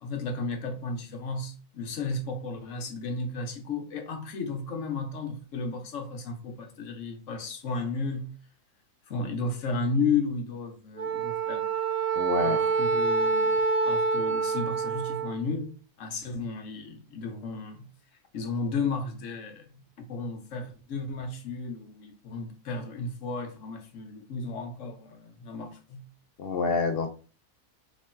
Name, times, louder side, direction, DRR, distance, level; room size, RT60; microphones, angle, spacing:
voice 1, 0.0-8.3 9.1-11.7 12.4-13.5 13.8-15.7 16.0-17.9 18.3-26.1, left 4 dB, 60° left, 1.1 m, -33 dB
Wind instrument woodwind instrument, 11.0-15.4, right 4 dB, 45° right, 1.2 m, -26 dB
voice 2, 12.2-12.6 26.4-27.1, left 4 dB, 80° left, 0.5 m, -27 dB
3.3 x 3.0 x 4.4 m
omnidirectional pair, 1.6 m